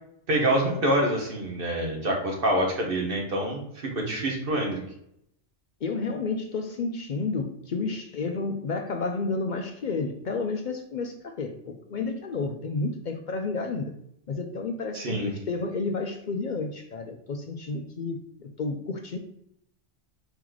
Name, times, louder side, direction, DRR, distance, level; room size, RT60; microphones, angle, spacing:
voice 1, 0.3-4.8 14.9-15.3, right 1 dB, 50° right, 0 dB, 1.1 m, -26 dB
voice 2, 5.8-13.9 14.3-19.2, left 3 dB, 65° left, 5 dB, 0.5 m, -31 dB
4.5 x 3.1 x 3.8 m, 0.73 s
omnidirectional pair, 1.2 m